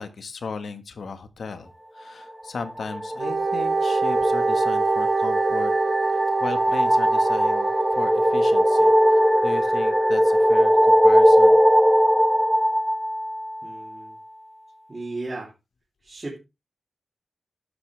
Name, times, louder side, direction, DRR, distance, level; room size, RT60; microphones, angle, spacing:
voice 1, 0.0-5.7 6.4-8.9 9.4-11.6, left 4 dB, 70° left, 9 dB, 1.7 m, -36 dB
sound 1, 2.5-14.0, equal, ahead, 0.8 m, -20 dB
Wind instrument woodwind instrument, 3.2-10.9, right 4 dB, 55° right, 0.7 m, -26 dB
voice 2, 13.6-14.2 14.9-15.5 16.0-16.4, right 2 dB, 30° right, -2 dB, 3.2 m, -35 dB
12.0 x 10.0 x 3.4 m, 0.26 s
wide cardioid pair, 125°, 0 cm